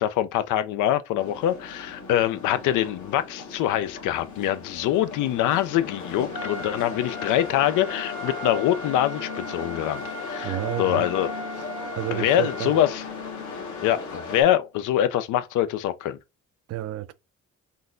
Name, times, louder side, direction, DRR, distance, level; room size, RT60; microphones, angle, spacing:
voice 1, 0.0-11.3 12.1-13.0 13.8-16.2, left 12 dB, 90° left, 0.5 m, -24 dB
sound 1, 1.2-14.4, left 5 dB, 70° left, 1.2 m, -37 dB
Trumpet, 6.3-12.8, right 1 dB, 85° right, 1.3 m, -38 dB
voice 2, 10.4-11.1 11.5-11.6 11.9-12.7 16.7-17.1, right 13 dB, 55° right, 0.4 m, -30 dB
3.8 x 2.4 x 2.5 m
cardioid pair, 90°, 30 cm